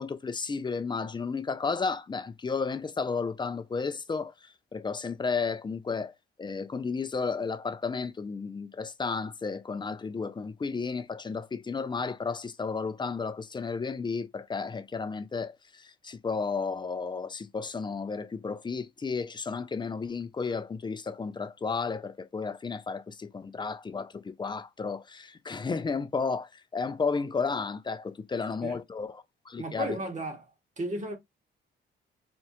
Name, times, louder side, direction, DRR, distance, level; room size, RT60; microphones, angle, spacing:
voice 1, 0.0-4.3 4.7-6.1 6.4-30.0, left 4 dB, 25° left, 0.5 m, -33 dB
voice 2, 29.6-30.5 30.8-31.2, right 1 dB, 35° right, 1.5 m, -34 dB
4.4 x 2.3 x 2.7 m
cardioid pair, 90°, 20 cm